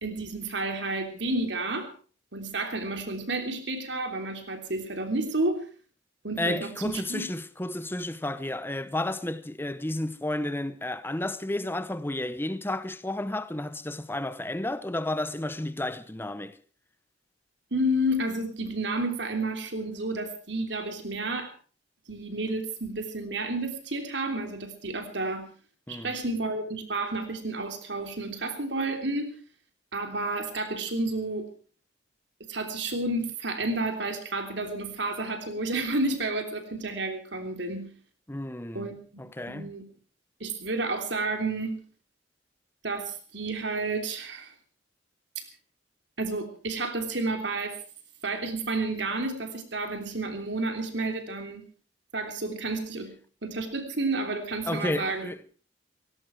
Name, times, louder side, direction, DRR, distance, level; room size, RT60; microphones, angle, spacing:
voice 1, 0.0-1.9 2.3-5.6 6.2-7.3 17.7-21.5 22.1-25.5 25.9-29.3 29.9-31.5 32.5-37.9 38.7-39.8 40.4-41.8 42.8-44.5 45.4-45.5 46.2-47.8 48.2-51.6 52.1-53.1 53.4-55.5, right 2 dB, 70° right, 3.2 m, -31 dB
voice 2, 6.4-16.5 25.9-26.1 38.3-38.9 39.2-39.7 54.7-55.4, left 1 dB, 10° left, 0.8 m, -32 dB
18.0 x 17.0 x 4.6 m
head